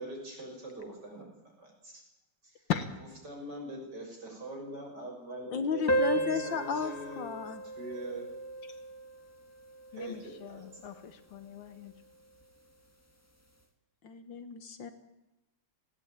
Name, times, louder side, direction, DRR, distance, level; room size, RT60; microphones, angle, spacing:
voice 1, 0.0-2.0 2.4-2.7 3.0-7.3 7.6-8.2 9.9-10.9, right 1 dB, 50° right, 0 dB, 7.2 m, -43 dB
voice 2, 5.5-7.6 14.0-14.9, left 6 dB, 60° left, 10 dB, 1.9 m, -33 dB
sound 1, 5.9-10.9, right 1 dB, 10° left, 1.6 m, -35 dB
voice 3, 9.9-11.9, left 10 dB, 80° left, 11 dB, 2.3 m, -47 dB
19.0 x 17.5 x 9.0 m, 0.99 s
omnidirectional pair, 2.4 m